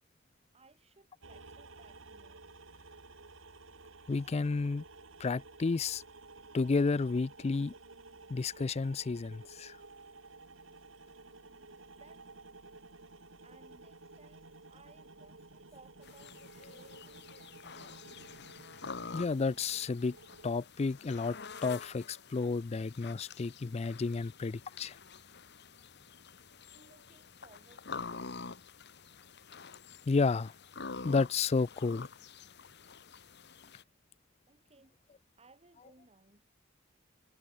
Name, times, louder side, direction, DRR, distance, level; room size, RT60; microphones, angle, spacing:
voice 1, 0.5-2.4 11.6-11.7 12.0-12.3 13.4-18.1 26.7-28.2 34.5-35.0 35.4-36.5, right 3 dB, 30° right, 2.8 m, -62 dB
sound 1, 1.2-20.5, right 3 dB, 85° right, 2.7 m, -54 dB
voice 2, 4.1-4.8 5.2-6.0 6.5-7.7 8.3-9.8 19.1-20.2 20.4-21.4 21.6-25.0 30.1-30.5 31.0-32.1, left 4 dB, 35° left, 0.4 m, -31 dB
sound 2, 16.0-33.8, left 5 dB, 60° left, 1.6 m, -48 dB
head